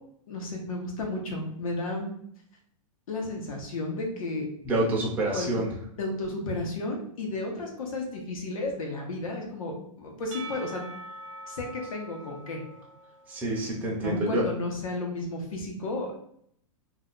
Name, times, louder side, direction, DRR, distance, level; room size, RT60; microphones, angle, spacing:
voice 1, 0.3-2.1 3.1-4.4 5.3-5.5 6.0-10.8 11.5-12.6 14.0-16.2, left 2 dB, 85° left, 0 dB, 1.0 m, -33 dB
voice 2, 4.6-5.7 13.3-14.4, right 2 dB, 10° right, -4 dB, 0.5 m, -27 dB
Percussion / Church bell, 10.3-14.0, right 1 dB, 65° right, 0.6 m, -44 dB
2.6 x 2.3 x 3.8 m, 0.67 s
supercardioid pair, 170°, 17 cm